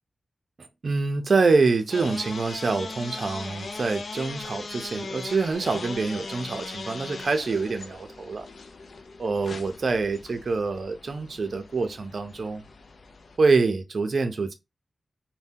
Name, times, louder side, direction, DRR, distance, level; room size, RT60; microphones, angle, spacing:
voice 1, 0.8-8.4 9.2-12.6 13.4-14.5, right 4 dB, 50° right, 0.5 m, -25 dB
sound 1, 1.9-13.4, left 3 dB, 55° left, 0.4 m, -39 dB
2.7 x 2.1 x 3.5 m
wide cardioid pair, 160°, 0 cm